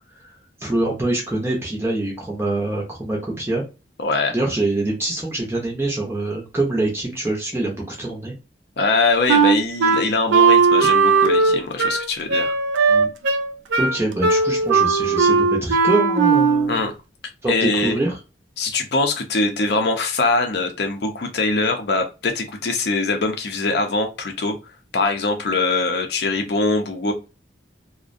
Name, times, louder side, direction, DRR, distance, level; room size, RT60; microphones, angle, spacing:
voice 1, 0.6-3.6 4.3-8.3 12.9-13.1 13.8-16.8 17.4-18.2, right 2 dB, 15° right, -2 dB, 0.5 m, -24 dB
voice 2, 4.0-4.3 8.8-12.5 16.7-16.9 17.5-18.0 18.6-24.6 24.9-27.1, left 3 dB, 60° left, 5 dB, 0.5 m, -22 dB
Wind instrument woodwind instrument, 9.3-16.7, right 4 dB, 85° right, 0.4 m, -17 dB
2.4 x 2.1 x 2.5 m, 0.30 s
head